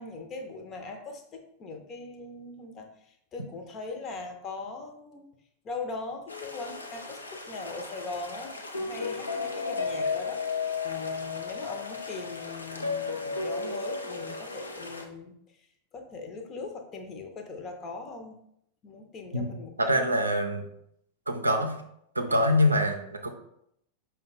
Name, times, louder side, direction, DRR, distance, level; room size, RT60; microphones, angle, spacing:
voice 1, 0.0-2.9 3.3-5.3 5.6-10.4 10.8-15.3 15.9-18.4 18.8-20.2 22.3-22.9, left 3 dB, 30° left, 4 dB, 0.7 m, -40 dB
sound 1, 6.3-15.0, left 4 dB, 80° left, 0.5 m, -34 dB
voice 2, 19.8-20.7 21.3-21.8 22.1-23.3, left 1 dB, 80° right, 5 dB, 0.5 m, -25 dB
5.2 x 2.2 x 4.0 m, 0.75 s
figure-of-eight pair, 90°, 0 cm